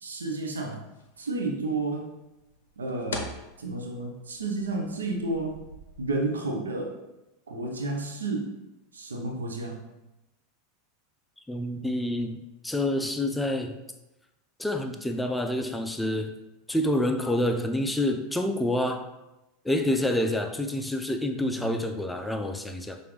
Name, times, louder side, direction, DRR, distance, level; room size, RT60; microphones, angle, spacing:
voice 1, 0.0-0.9 1.2-2.1 2.8-3.3 3.6-5.6 6.0-7.0 7.5-8.6 8.9-9.9 21.4-21.8, right 2 dB, 75° right, 2 dB, 0.6 m, -31 dB
sound 1, 0.8-6.2, left 3 dB, 70° left, 0.6 m, -43 dB
voice 2, 11.5-13.8 14.6-16.3 16.7-19.1 19.6-23.0, left 1 dB, 5° left, 5 dB, 0.4 m, -28 dB
5.6 x 2.6 x 3.2 m, 0.96 s
figure-of-eight pair, 85°, 0 cm